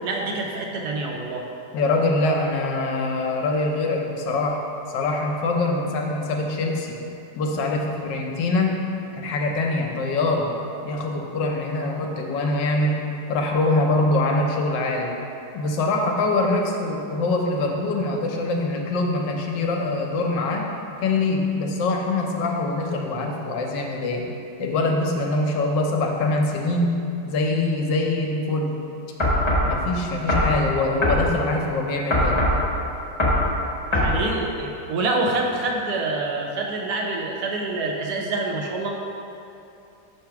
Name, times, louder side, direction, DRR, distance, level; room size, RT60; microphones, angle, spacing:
voice 1, 0.0-1.4 33.9-38.9, right 2 dB, 70° right, 0 dB, 1.1 m, -26 dB
voice 2, 1.7-4.6 4.9-7.0 7.4-8.8 9.2-10.5 10.8-13.0 13.3-15.1 15.5-20.7 21.0-24.3 24.6-28.7 29.6-32.4, left 2 dB, 80° left, 1 dB, 1.4 m, -24 dB
sound 1, 29.2-29.7 30.3-30.5 31.0-31.2 32.1-32.6 33.2-33.4 33.9-34.1, left 1 dB, 25° left, 0.7 m, -20 dB
5.6 x 3.3 x 5.8 m, 2.8 s
omnidirectional pair, 1.9 m